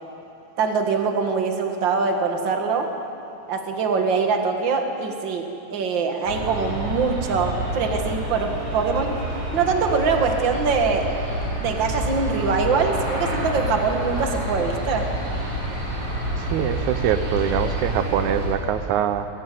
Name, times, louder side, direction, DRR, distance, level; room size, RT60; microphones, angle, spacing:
voice 1, 0.6-2.9 3.5-9.1 9.5-11.1 11.6-15.1, right 5 dB, 45° right, 4 dB, 2.2 m, -23 dB
Aircraft, 6.2-18.5, equal, 65° right, 6.8 m, -28 dB
voice 2, 16.4-19.3, right 10 dB, 85° right, 10 dB, 2.2 m, -24 dB
22.5 x 16.5 x 9.4 m, 2.7 s
omnidirectional pair, 3.3 m